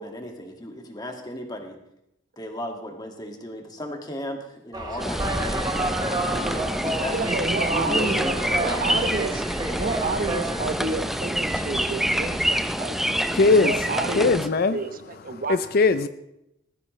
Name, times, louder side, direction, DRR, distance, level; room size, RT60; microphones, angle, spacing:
voice 1, 0.0-1.8 2.4-5.7 6.1-7.2 7.7-9.2, left 1 dB, 20° left, 3 dB, 2.0 m, -35 dB
sound 1, 4.7-12.6, right 2 dB, 20° right, 1.5 m, -31 dB
sound 2, 5.0-14.5, equal, ahead, 0.6 m, -27 dB
voice 2, 7.1-8.2 8.5-9.4 9.7-13.0 13.6-14.4 14.7-14.9 15.2-15.6, right 3 dB, 45° right, 9 dB, 0.9 m, -29 dB
voice 3, 12.9-13.9 14.1-14.8 15.3-16.1, left 3 dB, 50° left, 12 dB, 0.5 m, -21 dB
19.0 x 14.5 x 3.2 m, 0.82 s
head